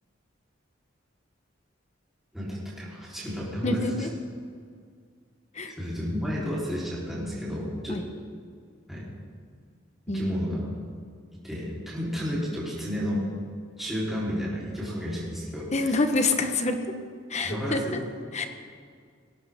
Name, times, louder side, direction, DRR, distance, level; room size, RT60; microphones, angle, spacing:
voice 1, 2.3-4.1 5.7-8.0 8.9-9.0 10.1-10.7 11.4-13.3 13.8-16.0 17.4-18.0, equal, ahead, -8 dB, 4.0 m, -32 dB
voice 2, 3.6-4.1 5.5-5.7 7.9-8.0 10.1-10.4 15.7-16.8 17.3-18.0 18.3-18.5, left 2 dB, 35° left, 6 dB, 1.2 m, -26 dB
19.5 x 16.5 x 3.7 m, 2.1 s
head